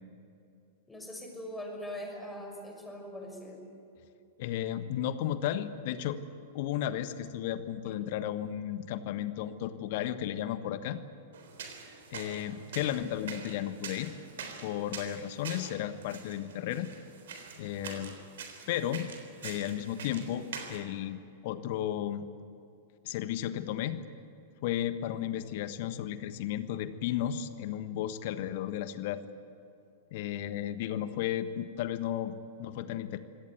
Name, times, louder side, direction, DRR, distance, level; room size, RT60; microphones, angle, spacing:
voice 1, 0.9-3.6, left 1 dB, 10° left, 2 dB, 5.9 m, -42 dB
voice 2, 4.4-6.2 6.5-11.0 12.1-14.1 14.6-16.9 17.6-18.2 18.7-19.1 19.4-22.2 23.0-24.0 24.6-29.2 30.1-33.2, left 11 dB, 50° left, 12 dB, 1.4 m, -34 dB
sound 1, 11.3-20.8, right 6 dB, 60° right, 3.8 m, -45 dB
25.5 x 17.5 x 9.4 m, 2.6 s
figure-of-eight pair, 95°, 0 cm